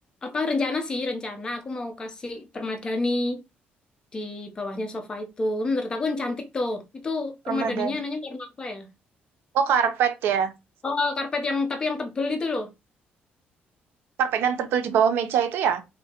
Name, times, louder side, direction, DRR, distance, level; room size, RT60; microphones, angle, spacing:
voice 1, 0.2-3.4 4.1-8.9 10.8-12.7, left 3 dB, 20° left, 0.5 m, -29 dB
voice 2, 7.5-8.0 9.5-10.5 14.2-15.8, right 7 dB, 80° right, 0.5 m, -23 dB
3.3 x 2.8 x 2.8 m
cardioid pair, 170°, 4 cm